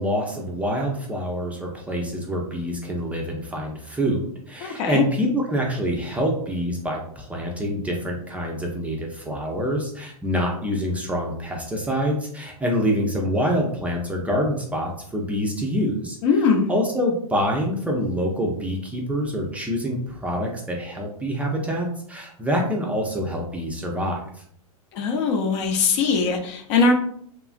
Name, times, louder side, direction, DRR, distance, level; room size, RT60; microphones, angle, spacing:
voice 1, 0.0-16.2 16.7-24.4, equal, 5° right, -1 dB, 0.4 m, -26 dB
voice 2, 4.6-5.0 16.2-16.7 24.9-26.9, left 4 dB, 50° left, 4 dB, 0.6 m, -21 dB
2.9 x 2.3 x 2.4 m, 0.64 s
hypercardioid pair, 120°, 19 cm